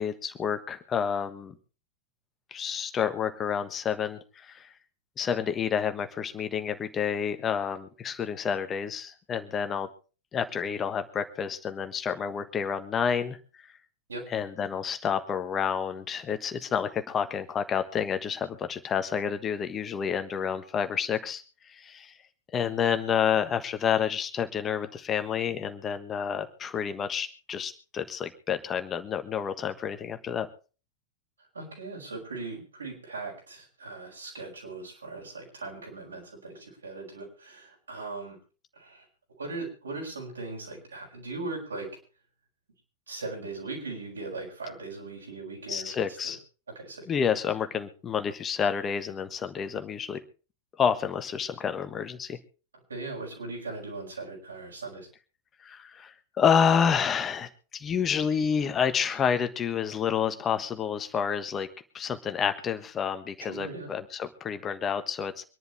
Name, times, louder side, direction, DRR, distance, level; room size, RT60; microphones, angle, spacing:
voice 1, 0.0-1.5 2.5-4.7 5.2-9.9 10.3-13.4 14.3-21.4 21.7-22.1 22.5-30.5 45.7-46.4 47.1-50.2 50.8-52.4 55.6-61.7 61.9-65.4, left 7 dB, 25° left, 9 dB, 1.4 m, -29 dB
voice 2, 31.5-38.4 38.8-39.0 39.4-41.9 43.1-46.0 46.2-46.3 46.7-47.1 52.9-55.1 63.4-63.9, right 3 dB, 75° right, -1 dB, 5.8 m, -39 dB
25.0 x 11.0 x 3.2 m, 0.35 s
figure-of-eight pair, 90°, 0 cm